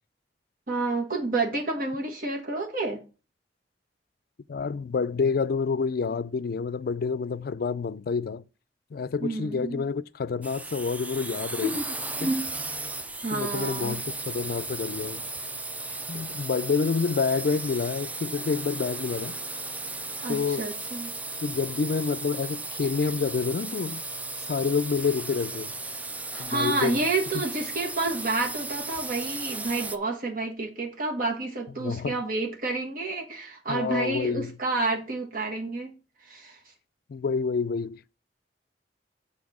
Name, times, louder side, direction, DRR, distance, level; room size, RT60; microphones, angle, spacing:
voice 1, 0.7-3.0 9.2-9.8 11.6-11.9 12.2-12.4 13.2-13.9 20.2-21.1 26.3-35.9 36.2-36.6, right 3 dB, 55° right, 1.4 m, -29 dB
voice 2, 4.5-8.4 8.9-11.7 12.2-12.3 13.3-15.2 16.1-19.4 20.3-20.7 21.4-24.0 24.5-25.7 26.4-27.0 27.3-27.4 31.8-32.2 33.7-34.6 37.1-38.2, left 5 dB, 60° left, 0.4 m, -28 dB
sound 1, 10.4-30.0, right 2 dB, 10° right, 0.4 m, -35 dB
7.3 x 4.3 x 6.1 m
head